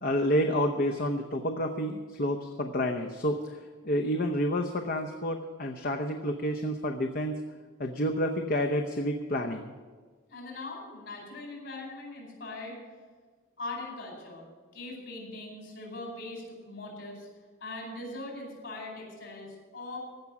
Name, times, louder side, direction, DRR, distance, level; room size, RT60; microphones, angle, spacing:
voice 1, 0.0-3.6 3.8-7.4 7.8-9.7, equal, 45° left, 3 dB, 0.8 m, -29 dB
voice 2, 10.3-12.8 13.6-14.5 14.7-17.3 17.6-20.0, left 2 dB, 60° left, 0 dB, 5.0 m, -41 dB
15.5 x 6.1 x 9.5 m, 1.4 s
head